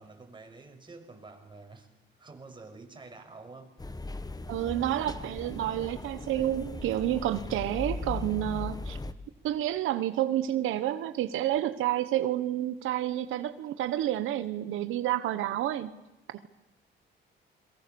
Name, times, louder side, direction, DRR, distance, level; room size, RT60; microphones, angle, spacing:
voice 1, 0.0-1.9 2.2-3.8, right 3 dB, 25° right, 3 dB, 5.9 m, -48 dB
sound 1, 3.8-9.1, left 2 dB, 20° left, 1.5 m, -38 dB
voice 2, 4.5-9.0 9.4-15.9, right 12 dB, 90° right, 11 dB, 1.2 m, -29 dB
28.5 x 23.0 x 7.0 m, 0.99 s
cardioid pair, 90°, 20 cm